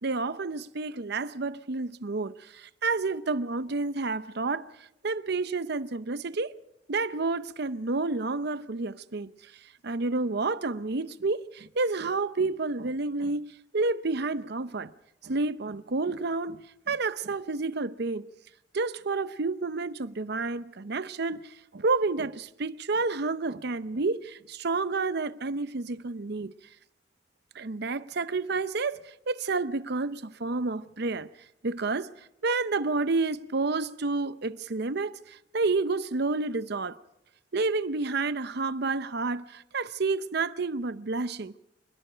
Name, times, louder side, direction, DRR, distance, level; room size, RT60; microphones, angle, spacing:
voice 1, 0.0-6.6 6.9-9.3 9.8-14.9 15.2-16.6 16.9-18.2 18.7-26.5 27.5-31.3 31.6-32.1 32.4-37.0 37.5-41.5, right 3 dB, 60° right, 0.7 m, -30 dB
26.5 x 20.5 x 5.1 m
head